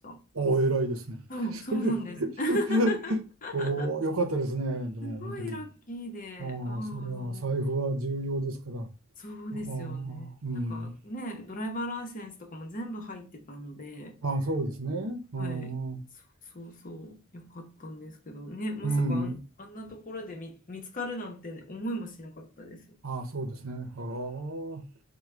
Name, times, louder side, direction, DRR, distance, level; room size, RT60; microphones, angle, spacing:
voice 1, 0.3-1.2 1.7-1.9 2.2-3.2 3.5-5.6 6.4-8.9 9.5-10.9 14.2-16.0 18.8-19.4 23.0-24.8, right 2 dB, 80° right, 0.7 m, -30 dB
voice 2, 1.3-3.2 3.4-3.9 5.0-7.4 9.2-10.3 10.7-14.2 15.4-15.7 16.5-22.8, equal, 40° left, 0.8 m, -37 dB
5.9 x 2.2 x 3.3 m
head